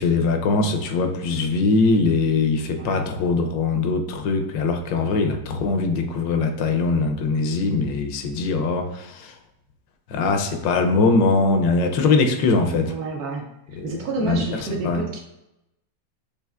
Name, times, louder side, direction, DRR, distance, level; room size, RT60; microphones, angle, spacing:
voice 1, 0.0-9.3 10.1-12.9 13.8-13.9 14.3-14.4 14.8-15.0, left 3 dB, 85° left, 5 dB, 1.3 m, -21 dB
voice 2, 2.7-3.0 12.9-13.5 13.8-15.2, right 2 dB, 70° right, 1 dB, 1.0 m, -29 dB
6.7 x 2.8 x 2.3 m, 0.90 s
omnidirectional pair, 2.0 m